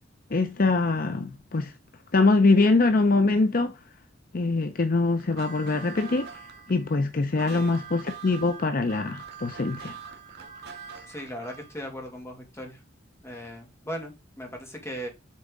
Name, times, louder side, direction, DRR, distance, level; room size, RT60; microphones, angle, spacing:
voice 1, 0.3-1.7 2.1-3.7 4.3-6.3 6.7-10.0, left 3 dB, 50° left, 0.6 m, -23 dB
sound 1, 5.2-11.8, right 6 dB, 60° right, 1.5 m, -43 dB
voice 2, 11.1-12.8 13.2-15.1, equal, 15° left, 2.4 m, -38 dB
8.4 x 4.2 x 3.8 m
head